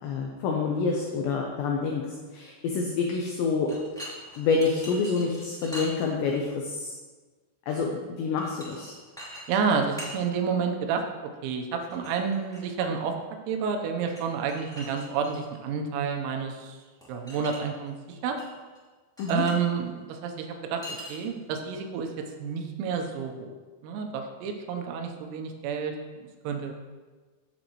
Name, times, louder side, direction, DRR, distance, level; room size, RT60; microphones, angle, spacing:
voice 1, 0.0-3.7 4.4-7.0 7.7-9.0 19.2-19.4, left 4 dB, 75° left, 0 dB, 2.7 m, -28 dB
sound 1, 3.6-6.5 8.4-8.9 9.2-9.4 9.7-10.2 11.9-12.7 14.1-15.6 17.0-17.6 17.8-18.5 18.7-18.8 19.2-19.6 20.8-21.4, equal, 5° left, 0.7 m, -42 dB
voice 2, 9.5-13.2 13.5-16.8 17.1-18.4 19.3-22.1 22.4-23.5 23.8-26.0 26.2-26.7, right 6 dB, 85° right, 3 dB, 3.8 m, -30 dB
16.0 x 7.7 x 3.1 m, 1.4 s
omnidirectional pair, 5.9 m